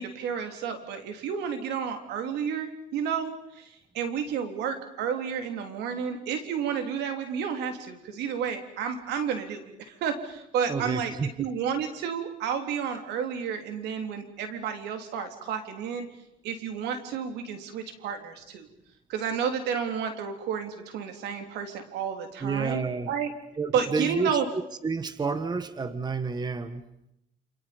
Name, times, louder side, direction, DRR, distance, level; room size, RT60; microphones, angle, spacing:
voice 1, 0.0-11.1 11.4-16.1 16.4-18.7 19.1-23.3 23.7-24.5, right 7 dB, 80° right, 6 dB, 3.6 m, -31 dB
voice 2, 10.7-11.5 22.4-23.1 23.6-24.4 24.8-26.8, right 4 dB, 25° right, 11 dB, 1.5 m, -30 dB
28.5 x 28.0 x 5.4 m, 0.82 s
cardioid pair, 110°, 17 cm